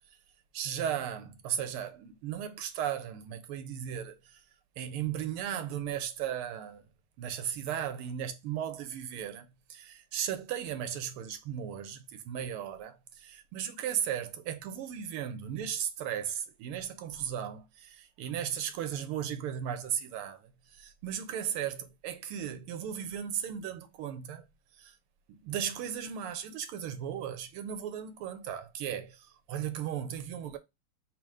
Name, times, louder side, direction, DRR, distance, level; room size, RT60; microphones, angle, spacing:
voice 1, 0.5-4.4 4.8-6.9 7.2-13.0 13.5-24.4 24.8-24.9 25.3-30.6, right 9 dB, 90° right, 1.6 m, -36 dB
4.4 x 2.5 x 4.8 m
omnidirectional pair, 2.4 m